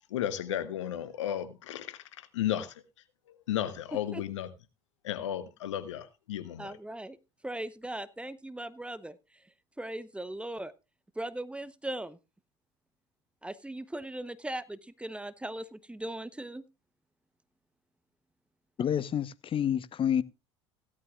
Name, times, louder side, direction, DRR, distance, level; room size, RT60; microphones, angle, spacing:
voice 1, 0.1-2.0 2.3-2.7 3.5-4.5 5.0-6.8, left 11 dB, 80° left, 1.1 m, -33 dB
voice 2, 6.6-7.2 7.4-9.2 9.8-10.7 11.2-12.2 13.4-16.6, right 1 dB, 5° right, 0.9 m, -38 dB
voice 3, 18.8-20.2, left 9 dB, 35° left, 0.9 m, -28 dB
16.5 x 12.0 x 2.4 m
hypercardioid pair, 70°, 15 cm